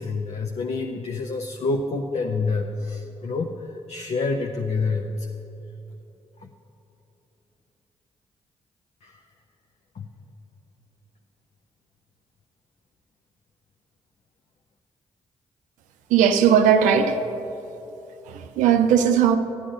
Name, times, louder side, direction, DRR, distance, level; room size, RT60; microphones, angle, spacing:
voice 1, 0.0-5.3 6.4-6.5 9.0-9.2 9.9-10.1, left 3 dB, 55° left, 0.6 m, -28 dB
voice 2, 16.1-17.2 18.2-19.4, right 8 dB, 85° right, 0.5 m, -18 dB
11.5 x 9.6 x 3.9 m
hypercardioid pair, 45°, 13 cm